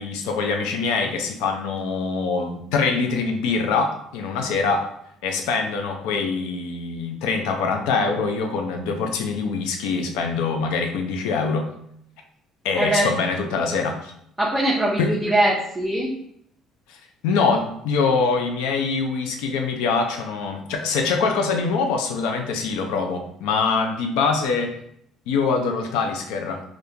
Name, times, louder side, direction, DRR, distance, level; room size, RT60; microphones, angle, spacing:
voice 1, 0.0-4.9 5.2-11.7 12.6-14.1 15.0-15.1 17.2-24.8 25.3-26.6, left 4 dB, 90° left, 4 dB, 0.5 m, -24 dB
voice 2, 12.8-13.1 14.4-16.1, right 1 dB, 10° right, -5 dB, 0.6 m, -21 dB
3.5 x 2.4 x 2.7 m, 0.71 s
cardioid pair, 105°, 0 cm